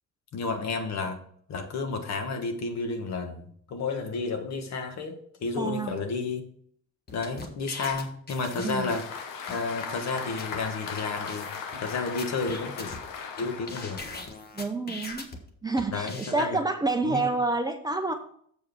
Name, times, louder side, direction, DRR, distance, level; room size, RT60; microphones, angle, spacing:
voice 1, 0.3-1.2 1.5-6.4 7.1-9.0 9.5-11.5 11.8-13.0 13.4-14.0 15.9-16.6 17.0-17.3, left 4 dB, 55° left, 6 dB, 1.4 m, -31 dB
voice 2, 5.6-5.9 8.6-8.9 14.5-15.3 15.6-18.1, right 3 dB, 10° right, 5 dB, 0.5 m, -28 dB
sound 1, 7.1-9.2 9.5-9.6 10.1-10.2 10.4-10.6 11.0-11.1 11.3-11.8 12.2-13.4 13.7-15.4 15.8-16.4, left 3 dB, 30° left, 1.2 m, -40 dB
Applause, 8.3-14.3, left 6 dB, 85° left, 1.2 m, -38 dB
7.4 x 4.6 x 6.1 m, 0.63 s
cardioid pair, 150°, 32 cm